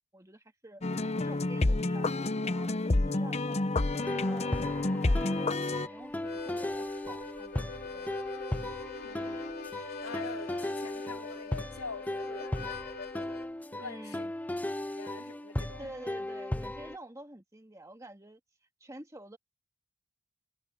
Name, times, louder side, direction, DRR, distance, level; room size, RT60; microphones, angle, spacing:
voice 1, 0.1-0.8 1.2-2.2 2.4-3.7 4.2-4.6 4.9-8.2 13.8-14.3 15.8-18.4 18.8-19.4, right 1 dB, 15° right, 1.9 m, -49 dB
sound 1, 0.8-5.9, left 2 dB, 30° left, 0.7 m, -29 dB
sound 2, 4.0-17.0, left 1 dB, 5° left, 0.3 m, -37 dB
Harmonica, 6.1-13.5, left 4 dB, 45° left, 3.8 m, -43 dB
voice 2, 9.0-9.5 10.0-12.9 13.7-14.3 14.8-15.9, left 4 dB, 75° left, 3.4 m, -45 dB
head